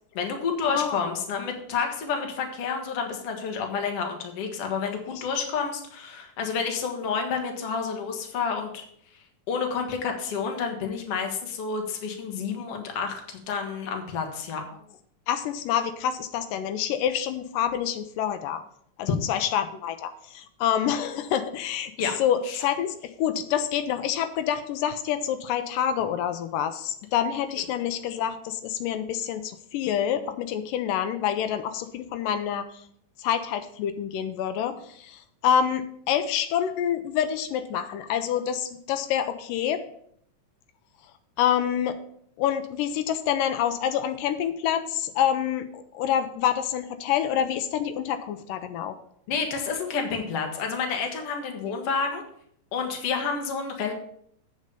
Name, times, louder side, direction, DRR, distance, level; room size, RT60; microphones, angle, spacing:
voice 1, 0.1-8.8 9.5-14.6 22.0-22.1 22.5-22.6 49.3-52.2 52.7-53.9, left 5 dB, 55° left, 3 dB, 2.0 m, -29 dB
voice 2, 0.7-1.0 5.1-5.2 15.3-18.6 19.0-21.9 22.2-32.7 33.2-39.8 41.4-42.0 42.4-49.0, left 9 dB, 85° left, 9 dB, 2.3 m, -27 dB
8.2 x 5.4 x 6.8 m, 0.68 s
omnidirectional pair, 3.8 m